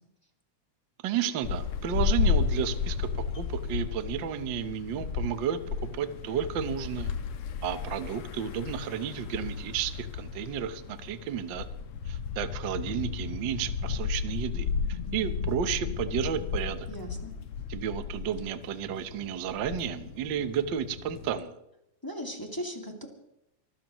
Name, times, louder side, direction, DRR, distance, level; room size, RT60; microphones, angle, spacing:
voice 1, 1.0-3.1 3.4-5.6 5.9-7.1 7.6-11.7 12.0-16.9 17.7-21.5, right 9 dB, 75° right, 10 dB, 1.0 m, -32 dB
sound 1, 1.4-21.4, left 6 dB, 65° left, 1.6 m, -33 dB
voice 2, 16.9-17.3 22.0-23.1, equal, 10° left, 1 dB, 1.7 m, -37 dB
24.5 x 15.5 x 3.1 m, 0.83 s
omnidirectional pair, 3.6 m